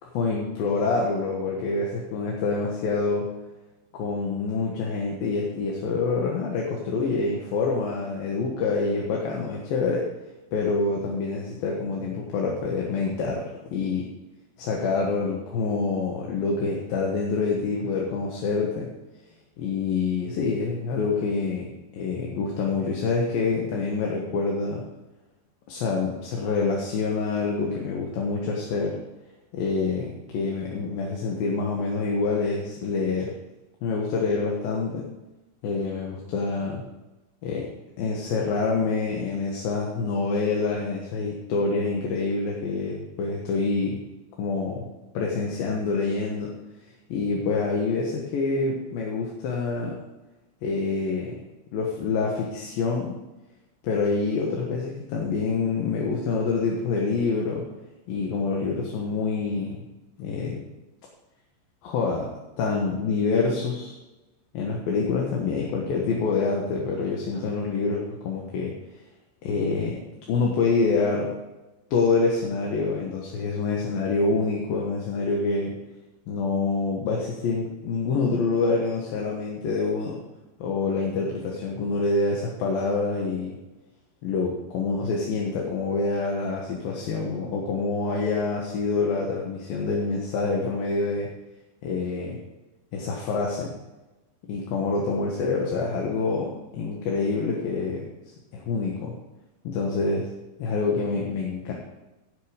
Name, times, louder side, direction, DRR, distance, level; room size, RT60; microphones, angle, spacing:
voice 1, 0.1-3.3 3.9-10.1 10.5-14.0 14.6-18.9 19.6-24.8 25.7-29.0 29.5-33.3 33.8-35.0 35.6-36.8 37.4-37.7 38.0-44.0 44.4-44.9 45.1-46.5 47.1-50.0 50.6-51.3 51.7-53.1 53.8-57.7 58.1-59.8 60.2-60.6 61.8-62.3 62.6-64.0 64.5-68.7 69.4-70.0 70.3-71.3 71.9-75.7 76.3-80.2 80.6-83.6 84.2-91.3 91.8-92.4 92.9-93.7 94.5-98.1 98.5-99.1 99.6-100.3 100.6-101.7, left 4 dB, 70° left, -1 dB, 3.0 m, -26 dB
16.0 x 6.6 x 5.1 m, 1.0 s
omnidirectional pair, 4.5 m